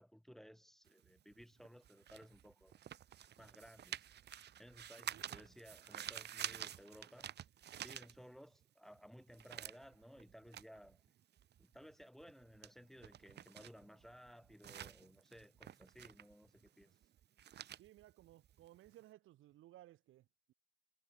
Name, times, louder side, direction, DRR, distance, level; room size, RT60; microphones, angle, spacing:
voice 1, 0.0-2.8 3.4-4.1 4.6-7.3 7.8-11.0 11.6-17.0, equal, ahead, 2.2 m, -58 dB
sound 1, 0.9-8.6 8.9-19.0, right 10 dB, 60° right, 0.9 m, -50 dB
voice 2, 5.1-5.5 17.8-20.5, right 15 dB, 85° right, 3.4 m, -61 dB
cardioid pair, 90°, 20 cm